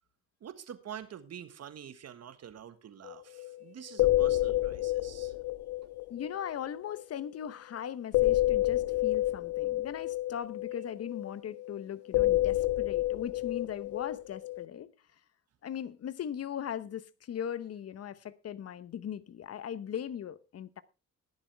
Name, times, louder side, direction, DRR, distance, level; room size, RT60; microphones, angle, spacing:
voice 1, 0.4-5.3, right 9 dB, 55° right, 1.6 m, -46 dB
sound 1, 3.1-3.2 3.4-3.6 3.9-7.2 8.1-11.8 12.1-14.7, left 16 dB, 85° left, 0.5 m, -29 dB
voice 2, 6.1-14.9 15.6-20.8, left 9 dB, 55° left, 0.9 m, -39 dB
20.5 x 7.3 x 3.4 m
cardioid pair, 90°, 30 cm